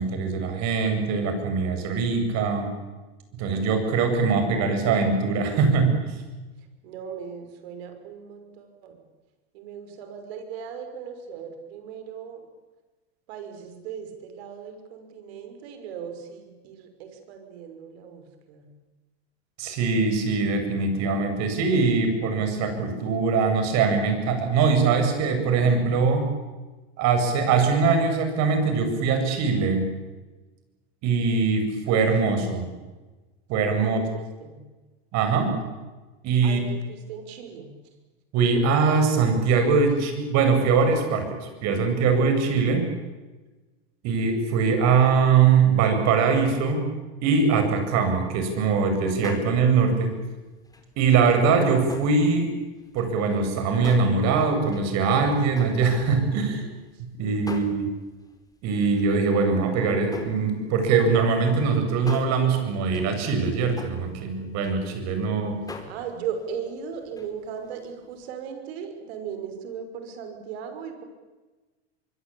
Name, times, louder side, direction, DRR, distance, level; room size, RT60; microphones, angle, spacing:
voice 1, 0.0-2.7 3.3-6.2 19.6-26.3 27.0-29.9 31.0-32.7 33.5-34.0 35.1-35.5 36.2-36.6 38.3-42.8 44.0-46.9 47.2-50.1 51.0-52.5 52.9-56.6 57.2-57.9 58.6-65.6, right 5 dB, 55° right, 6 dB, 8.0 m, -22 dB
voice 2, 6.8-9.0 9.5-12.5 13.3-18.7 31.9-32.6 33.8-34.6 36.4-37.7 39.9-40.1 42.6-43.1 56.2-57.7 65.9-71.0, right 7 dB, 70° right, 7 dB, 6.0 m, -38 dB
sound 1, 49.2-50.3 50.6-52.5 52.8-57.0 57.4-58.3 58.8-65.2 65.7-67.3 67.6-67.9 68.2-68.3, left 3 dB, 10° left, 4.6 m, -42 dB
24.5 x 24.0 x 8.8 m, 1.2 s
hypercardioid pair, 100°, 33 cm